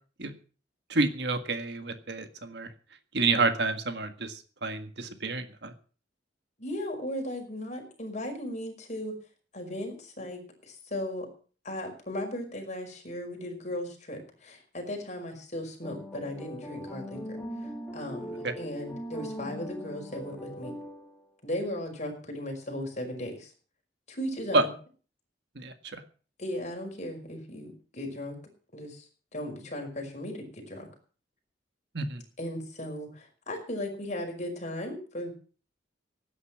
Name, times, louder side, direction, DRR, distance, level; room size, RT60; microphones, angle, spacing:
voice 1, 0.9-2.7 3.1-5.7 18.4-18.5 24.5-24.7 25.6-26.0 31.9-32.2, right 3 dB, 65° right, 8 dB, 1.7 m, -29 dB
voice 2, 6.6-9.1 9.5-11.3 11.6-20.7 21.4-23.5 24.1-24.7 26.4-28.4 28.7-29.1 29.3-30.9 32.4-35.3, left 1 dB, 40° left, 2 dB, 5.2 m, -37 dB
sound 1, 15.8-21.2, equal, 5° left, 3.1 m, -40 dB
17.0 x 9.7 x 6.3 m, 0.40 s
head